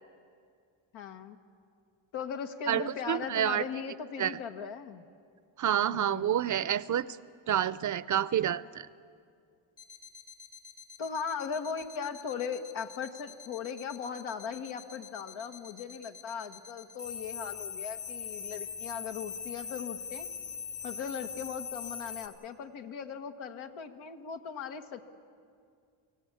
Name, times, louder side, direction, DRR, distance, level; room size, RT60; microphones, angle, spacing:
voice 1, 0.9-1.4 2.1-5.0 5.9-6.4 11.0-20.3 20.8-25.0, left 6 dB, 90° left, 7 dB, 1.4 m, -38 dB
voice 2, 2.7-3.6 4.2-4.4 5.6-7.1 7.5-8.9, right 10 dB, 40° right, 18 dB, 0.5 m, -28 dB
sound 1, 9.8-22.3, left 6 dB, 60° left, 4.5 m, -42 dB
25.0 x 16.0 x 8.4 m, 2.3 s
cardioid pair, 100°, 46 cm